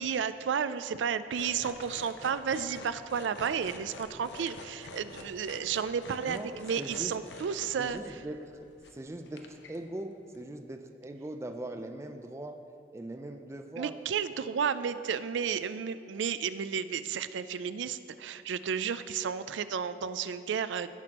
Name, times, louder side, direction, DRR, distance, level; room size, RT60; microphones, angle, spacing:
voice 1, 0.0-8.2 13.8-20.9, right 7 dB, 85° right, 13 dB, 0.4 m, -32 dB
sound 1, 1.4-8.0 8.5-9.0 9.3-9.8 10.4-10.5, left 3 dB, 80° left, 0.7 m, -47 dB
voice 2, 6.2-7.1 7.8-8.6 8.9-12.6 12.9-13.9, right 1 dB, 15° right, 6 dB, 0.3 m, -41 dB
16.5 x 6.0 x 2.9 m, 2.6 s
head